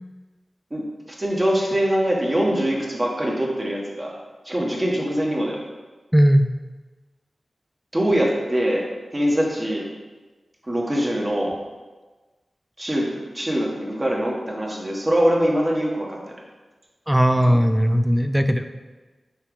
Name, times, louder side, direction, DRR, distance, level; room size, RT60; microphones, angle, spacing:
voice 1, 0.7-4.1 4.4-5.6 7.9-9.9 10.7-11.5 12.8-16.2, equal, 25° right, -3 dB, 1.3 m, -23 dB
voice 2, 6.1-6.5 17.1-18.6, equal, 5° right, 8 dB, 0.4 m, -17 dB
5.8 x 4.8 x 4.9 m, 1.3 s
wide cardioid pair, 105°, 0 cm